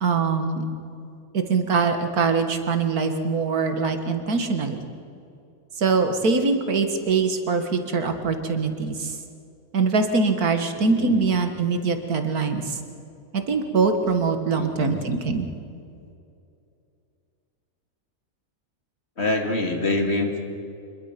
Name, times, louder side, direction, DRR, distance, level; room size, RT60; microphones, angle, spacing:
voice 1, 0.0-0.6 1.3-4.8 5.8-9.2 9.7-12.8 13.3-15.5, right 4 dB, 85° right, 7 dB, 2.1 m, -23 dB
voice 2, 14.6-15.0 19.2-20.4, left 2 dB, 45° left, 3 dB, 2.6 m, -25 dB
26.0 x 21.5 x 5.9 m, 2.6 s
omnidirectional pair, 1.5 m